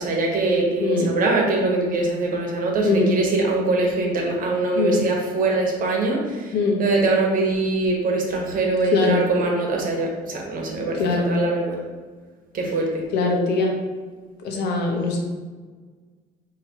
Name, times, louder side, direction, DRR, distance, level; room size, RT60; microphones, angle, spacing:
voice 1, 0.0-6.5 6.8-11.0 11.3-11.8 12.5-13.0, right 2 dB, 55° right, 0 dB, 1.1 m, -23 dB
voice 2, 0.8-1.1 2.8-3.2 4.7-5.0 6.5-6.8 8.9-9.2 10.9-11.4 13.1-13.8 14.4-15.2, left 3 dB, 75° left, 2 dB, 0.9 m, -21 dB
5.7 x 2.9 x 2.9 m, 1.5 s
cardioid pair, 110°, 17 cm